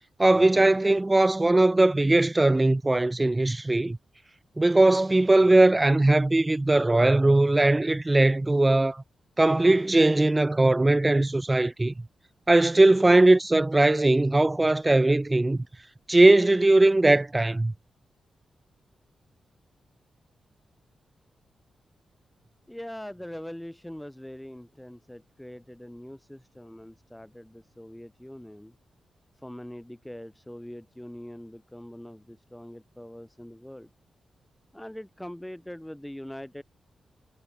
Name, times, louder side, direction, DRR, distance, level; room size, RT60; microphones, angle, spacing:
voice 1, 0.2-4.0 4.6-9.0 9.4-11.9 12.5-15.6 16.1-17.7, right 2 dB, 15° right, 0.9 m, -20 dB
voice 2, 22.7-28.8 29.4-33.9 34.7-36.6, left 1 dB, 5° left, 6.6 m, -42 dB
wide cardioid pair, 150°, 0 cm